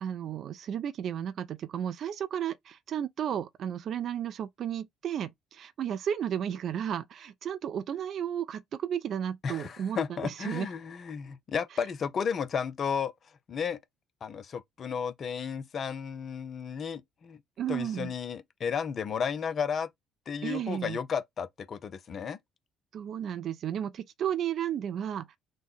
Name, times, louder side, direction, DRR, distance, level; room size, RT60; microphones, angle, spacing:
voice 1, 0.0-10.7 17.6-18.1 20.4-21.0 22.9-25.3, right 9 dB, 45° right, 0.4 m, -33 dB
voice 2, 9.4-13.1 13.5-13.8 14.2-17.4 17.7-19.9 20.3-22.4, left 6 dB, 40° left, 0.5 m, -33 dB
3.2 x 2.1 x 4.0 m
figure-of-eight pair, 50°, 0 cm